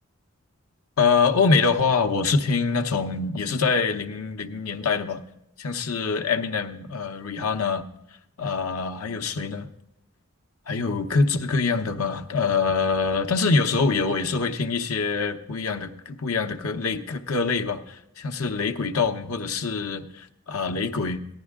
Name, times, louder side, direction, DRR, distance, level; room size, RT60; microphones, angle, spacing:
voice 1, 1.0-5.2 5.6-7.9 8.4-9.7 10.7-21.2, left 4 dB, 90° left, 6 dB, 0.8 m, -24 dB
14.5 x 10.5 x 3.6 m, 0.84 s
head